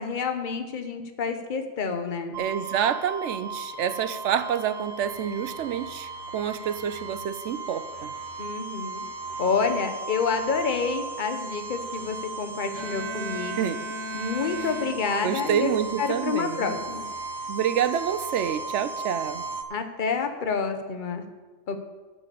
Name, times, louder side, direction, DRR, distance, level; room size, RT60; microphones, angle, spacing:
voice 1, 0.0-2.4 8.4-9.0 9.4-13.6 14.1-15.7 16.0-17.1 19.7-21.3 21.7-21.8, left 5 dB, 40° left, 7 dB, 1.1 m, -28 dB
sound 1, 2.3-19.6, right 3 dB, 55° right, 1.2 m, -36 dB
voice 2, 2.4-8.1 13.6-13.8 15.2-16.7 17.5-19.4, right 9 dB, 70° right, 13 dB, 0.9 m, -28 dB
Bowed string instrument, 12.8-15.5, right 1 dB, 20° left, 1.3 m, -36 dB
12.5 x 4.9 x 8.3 m, 1.3 s
omnidirectional pair, 1.3 m